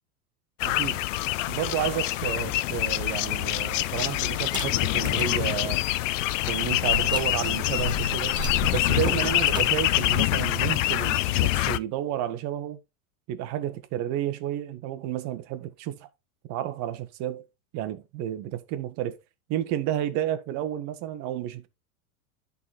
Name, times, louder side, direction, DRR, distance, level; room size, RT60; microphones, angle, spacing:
sound 1, 0.6-11.8, left 16 dB, 60° left, 0.6 m, -25 dB
voice 1, 0.6-1.0 1.5-5.8 6.5-8.4 8.7-12.8 13.3-16.1 16.5-17.5 17.7-19.1 19.5-21.7, right 11 dB, 40° right, 1.2 m, -31 dB
sound 2, 4.4-5.4 5.8-5.9 6.8-11.1, right 2 dB, 10° right, 1.1 m, -36 dB
11.0 x 4.2 x 4.2 m
supercardioid pair, 140°, 44 cm